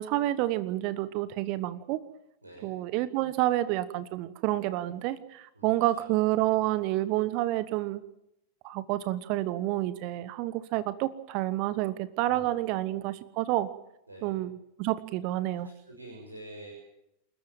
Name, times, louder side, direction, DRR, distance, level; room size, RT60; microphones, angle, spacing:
voice 1, 0.0-2.0 2.6-8.0 8.6-13.7 14.2-15.7, right 15 dB, 45° right, 15 dB, 1.2 m, -29 dB
voice 2, 5.5-6.1 12.2-13.0 14.1-14.4 15.5-16.7, right 1 dB, 80° right, -1 dB, 6.7 m, -48 dB
28.5 x 13.5 x 9.2 m, 0.83 s
figure-of-eight pair, 90°, 0 cm